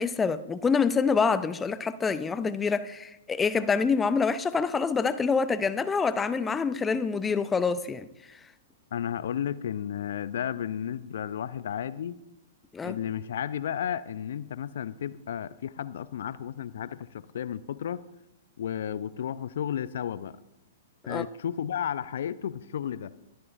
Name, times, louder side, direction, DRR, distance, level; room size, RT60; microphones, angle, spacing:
voice 1, 0.0-8.1 12.7-13.0 21.1-21.2, left 5 dB, 15° left, 14 dB, 0.6 m, -26 dB
voice 2, 8.9-12.2 12.8-18.0 18.6-20.4 21.1-23.1, left 9 dB, 60° left, 16 dB, 0.5 m, -33 dB
22.5 x 14.0 x 2.5 m, 0.90 s
figure-of-eight pair, 110°, 0 cm